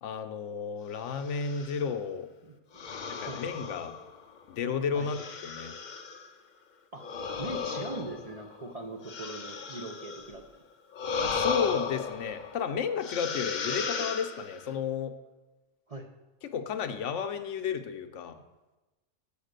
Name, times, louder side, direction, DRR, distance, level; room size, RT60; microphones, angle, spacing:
voice 1, 0.0-2.3 3.1-3.9 4.5-5.7 11.3-15.1 16.4-18.4, left 6 dB, 80° left, 8 dB, 1.0 m, -32 dB
sound 1, 1.2-1.9 2.8-4.4 5.0-6.3 7.0-10.4 10.9-12.6 13.0-14.7, left 5 dB, 50° left, 0.6 m, -35 dB
voice 2, 2.9-3.4 4.9-5.1 6.9-7.1 7.4-10.6 15.9-16.1, right 2 dB, 45° right, 3 dB, 0.5 m, -41 dB
7.2 x 5.0 x 6.6 m, 1.1 s
omnidirectional pair, 1.3 m